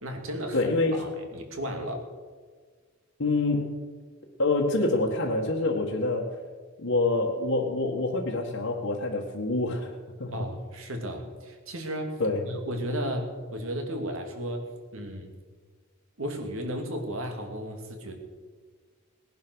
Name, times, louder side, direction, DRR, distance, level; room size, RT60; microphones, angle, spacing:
voice 1, 0.0-0.6 1.0-2.1 10.3-12.2 12.5-15.3 16.2-18.1, equal, 70° right, 4 dB, 2.7 m, -34 dB
voice 2, 0.5-1.0 3.2-3.7 4.4-6.4 6.8-9.9 10.2-10.3 12.2-12.5, left 2 dB, 70° left, -4 dB, 1.8 m, -26 dB
19.0 x 10.5 x 6.4 m, 1.5 s
head